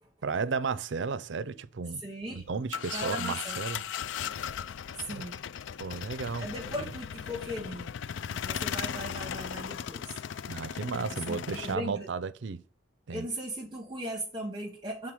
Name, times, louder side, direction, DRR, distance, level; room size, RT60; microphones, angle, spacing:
voice 1, 0.2-2.0 2.3-3.8 5.1-5.3 5.8-6.5 10.5-12.6 13.1-13.3, right 5 dB, 70° right, 0.5 m, -33 dB
voice 2, 2.0-2.4 2.9-3.6 5.0-5.4 6.4-7.9 8.2-10.2 11.3-12.1 13.1-15.1, right 1 dB, 25° right, 0.8 m, -38 dB
sound 1, 2.4-11.7, left 8 dB, 75° left, 0.4 m, -37 dB
7.5 x 3.7 x 6.3 m
head